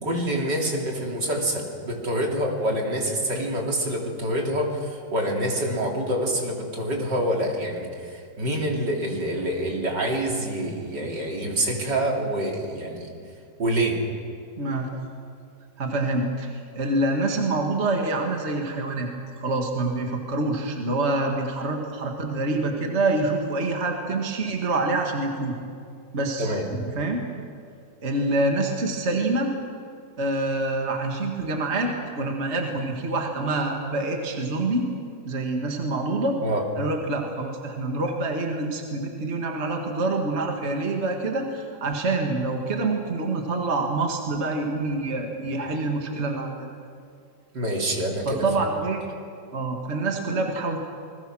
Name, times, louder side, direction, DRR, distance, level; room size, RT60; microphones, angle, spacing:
voice 1, 0.0-13.1 13.6-14.0 26.4-26.7 36.4-36.6 47.5-48.4, right 1 dB, 70° right, 0 dB, 3.6 m, -26 dB
voice 2, 14.6-15.2 15.8-19.1 19.4-25.5 26.1-27.3 28.0-29.6 30.2-34.9 35.3-36.4 36.8-46.7 48.2-49.0 49.5-50.8, right 2 dB, 35° right, 2 dB, 2.1 m, -26 dB
28.5 x 21.0 x 6.2 m, 2.3 s
omnidirectional pair, 2.0 m